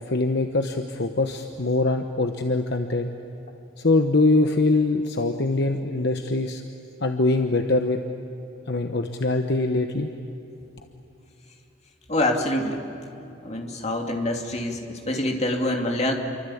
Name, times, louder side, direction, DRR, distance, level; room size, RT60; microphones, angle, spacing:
voice 1, 0.1-3.1 3.8-6.6 7.0-8.0 8.7-10.1, left 2 dB, 50° left, 6 dB, 1.0 m, -23 dB
voice 2, 12.1-12.8 13.4-16.1, left 1 dB, 30° left, 2 dB, 2.6 m, -25 dB
28.0 x 24.0 x 8.6 m, 2.8 s
head